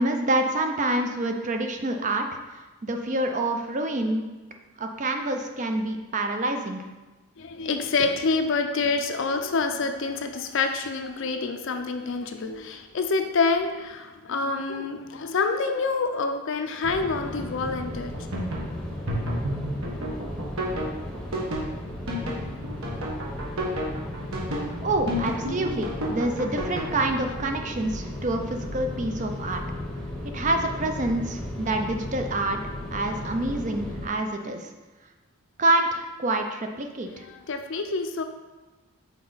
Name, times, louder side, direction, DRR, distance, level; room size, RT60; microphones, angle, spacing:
voice 1, 0.0-2.2 2.8-4.3 4.8-6.8 24.8-29.6 30.3-32.6 32.9-34.7 35.6-37.2, right 2 dB, 35° right, 5 dB, 0.4 m, -27 dB
voice 2, 7.4-18.1 37.2-38.2, left 4 dB, 55° left, 6 dB, 0.5 m, -27 dB
sound 1, 16.8-34.1, left 1 dB, 5° left, 0.8 m, -35 dB
sound 2, 18.0-26.9, equal, 70° right, 1.2 m, -30 dB
5.8 x 4.3 x 3.9 m, 1.2 s
head